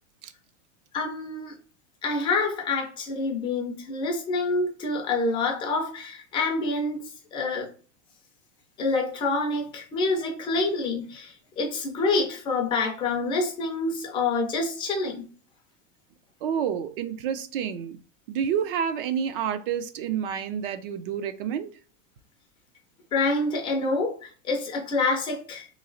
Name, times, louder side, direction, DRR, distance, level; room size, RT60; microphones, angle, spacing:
voice 1, 0.9-1.5 2.0-7.0 7.3-7.7 8.8-15.2 23.1-25.7, left 3 dB, 15° left, 1 dB, 0.4 m, -27 dB
voice 2, 16.4-18.0 18.3-21.7, right 8 dB, 45° right, 11 dB, 0.4 m, -29 dB
3.0 x 2.8 x 3.8 m, 0.40 s
supercardioid pair, 165°, 39 cm